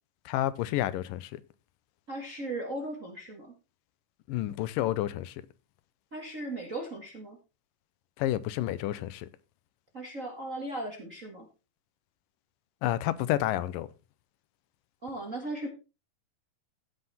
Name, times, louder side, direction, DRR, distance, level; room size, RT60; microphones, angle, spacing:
voice 1, 0.3-1.4 4.3-5.3 8.2-9.3 12.8-13.9, left 14 dB, 85° left, 2.4 m, -30 dB
voice 2, 2.1-3.5 6.1-7.4 9.9-11.5 15.0-15.7, right 1 dB, 35° right, 1.5 m, -37 dB
15.5 x 5.7 x 4.2 m
omnidirectional pair, 3.9 m